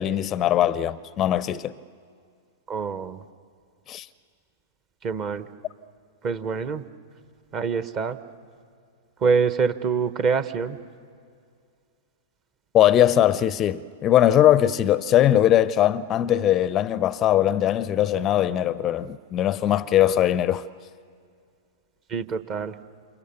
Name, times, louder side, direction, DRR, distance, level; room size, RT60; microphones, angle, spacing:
voice 1, 0.0-1.7 3.9-4.1 12.7-20.7, left 12 dB, 30° left, 0.6 m, -20 dB
voice 2, 2.7-3.2 5.0-5.5 6.2-6.8 7.5-8.2 9.2-10.8 22.1-22.7, right 5 dB, 30° right, 1.2 m, -25 dB
29.5 x 27.5 x 6.8 m
figure-of-eight pair, 100°, 0 cm